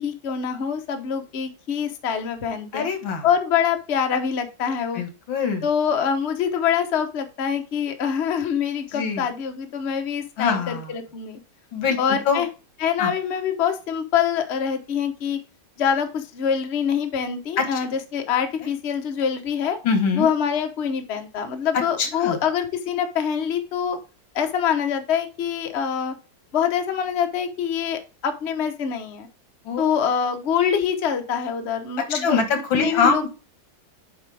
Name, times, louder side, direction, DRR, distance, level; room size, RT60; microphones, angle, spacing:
voice 1, 0.0-2.9 3.2-5.0 5.6-11.4 12.0-12.5 12.8-15.4 15.8-19.8 20.1-24.0 24.3-26.1 26.5-29.3 29.8-32.5 32.7-33.2, left 7 dB, 45° left, 6 dB, 1.0 m, -25 dB
voice 2, 2.7-3.3 4.9-5.7 8.9-9.3 10.4-10.9 11.7-12.4 13.0-13.1 17.6-17.7 19.8-20.3 22.0-22.4 29.7-29.9 32.1-33.3, left 5 dB, 90° left, 7 dB, 2.2 m, -23 dB
8.0 x 5.0 x 3.4 m, 0.32 s
omnidirectional pair, 2.0 m